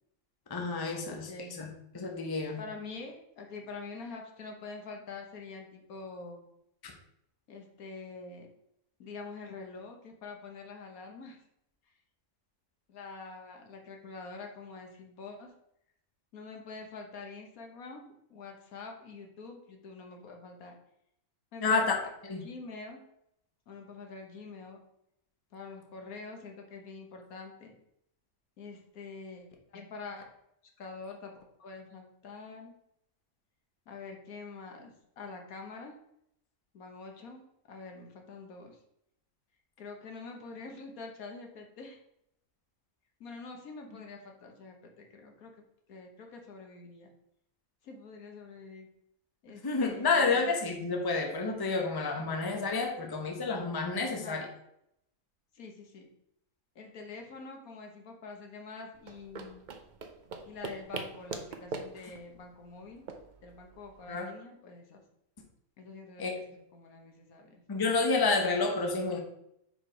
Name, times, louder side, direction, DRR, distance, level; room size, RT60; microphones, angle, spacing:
voice 1, 0.5-1.3 1.6-2.6 6.8-6.9 21.6-21.9 22.3-22.4 49.6-54.4 64.1-64.3 66.2-66.4 67.7-69.2, left 4 dB, 20° left, 2 dB, 0.7 m, -29 dB
voice 2, 1.1-1.6 2.6-6.5 7.5-8.5 9.0-11.4 12.9-15.5 16.3-20.8 21.5-21.8 22.4-23.0 23.7-24.8 25.5-27.8 28.6-30.3 30.8-31.3 31.6-32.7 33.9-35.9 36.7-38.8 39.8-42.0 43.2-45.5 45.9-47.1 47.8-48.9 49.4-50.5 54.1-54.5 55.5-56.1 56.7-59.7 60.5-63.1 63.4-65.0 65.8-67.6, left 4 dB, 75° left, 3 dB, 1.5 m, -46 dB
sound 1, 58.9-64.2, right 4 dB, 55° right, 0.5 m, -43 dB
4.9 x 4.8 x 5.0 m, 0.77 s
omnidirectional pair, 1.5 m